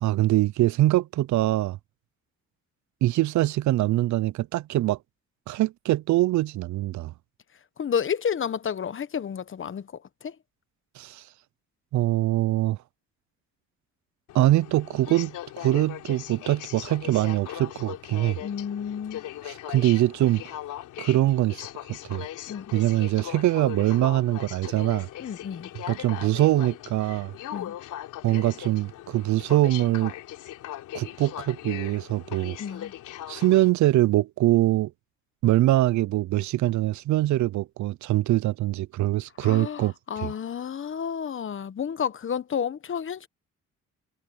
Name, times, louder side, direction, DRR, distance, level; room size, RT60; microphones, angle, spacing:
voice 1, 0.0-1.8 3.0-5.0 5.5-7.1 11.0-11.2 11.9-12.8 14.3-18.4 19.4-20.5 21.0-22.3 22.7-25.1 25.9-27.3 28.2-30.1 30.9-32.6 33.3-34.9 35.4-39.9 40.2-40.3, right 15 dB, 70° right, 0.5 m, -23 dB
voice 2, 7.8-9.9 10.2-10.3 18.4-19.2 22.5-22.7 25.2-25.7 27.5-27.7 32.6-32.9 39.4-43.3, left 7 dB, 40° left, 1.1 m, -31 dB
Aircraft, 14.3-33.7, left 13 dB, 90° left, 3.4 m, -39 dB
cardioid pair, 90°, 30 cm